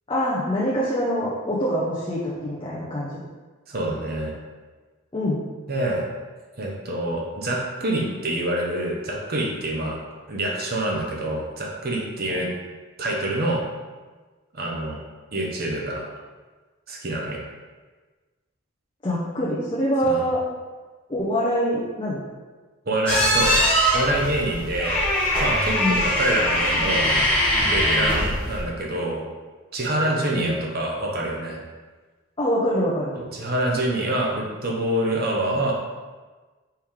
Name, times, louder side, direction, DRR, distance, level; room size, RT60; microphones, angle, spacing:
voice 1, 0.1-3.2 5.1-5.4 12.3-12.5 19.0-20.4 21.1-22.2 25.8-26.0 30.3-30.5 32.4-33.1, equal, 25° left, -7 dB, 0.6 m, -24 dB
voice 2, 3.7-4.3 5.7-6.0 6.6-10.0 10.3-12.5 13.0-13.6 14.5-15.0 15.3-16.0 16.9-17.4 20.0-20.2 22.9-23.6 23.9-25.0 25.4-27.1 27.6-29.2 29.7-31.6 33.1-35.7, right 1 dB, 45° right, -1 dB, 0.8 m, -26 dB
sound 1, 23.1-28.6, equal, 5° left, 1.0 m, -22 dB
4.5 x 3.2 x 3.5 m, 1.3 s
head